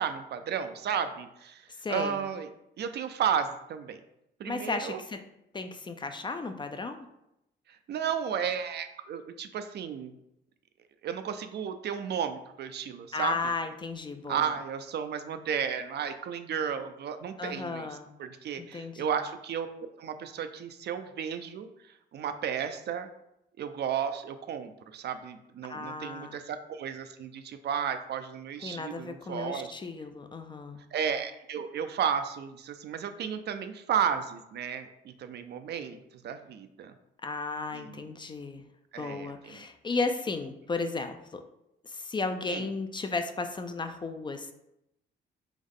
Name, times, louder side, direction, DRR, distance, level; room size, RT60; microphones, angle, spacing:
voice 1, 0.0-2.5 2.8-4.0 4.4-5.0 7.7-10.1 11.0-13.5 14.3-17.9 18.2-19.7 20.0-21.7 22.1-23.1 23.6-29.7 30.9-36.0 36.2-36.9 37.7-38.2 38.9-39.6 42.5-42.7, right 8 dB, 55° right, 9 dB, 0.4 m, -33 dB
voice 2, 1.8-2.2 4.5-5.2 5.5-7.1 13.1-14.4 17.4-18.1 18.6-19.2 25.7-26.4 28.6-30.8 37.2-38.6 39.0-41.4 41.8-44.5, left 3 dB, 25° left, 7 dB, 0.4 m, -34 dB
3.6 x 3.0 x 3.7 m, 0.84 s
cardioid pair, 90°, 20 cm